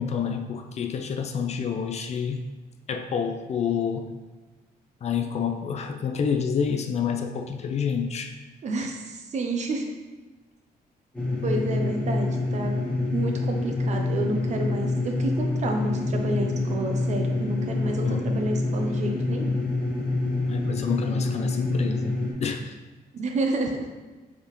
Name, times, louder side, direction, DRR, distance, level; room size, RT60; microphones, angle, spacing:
voice 1, 0.0-2.4 2.9-4.1 5.0-8.3 18.0-18.5 20.5-22.8, left 6 dB, 40° left, 5 dB, 0.4 m, -28 dB
voice 2, 8.6-9.9 11.4-12.7 13.1-19.5 23.1-23.9, right 2 dB, 45° right, 3 dB, 0.6 m, -29 dB
sound 1, 11.1-22.3, left 2 dB, 10° left, 1.4 m, -27 dB
4.4 x 3.5 x 3.0 m, 1.2 s
cardioid pair, 135°, 16 cm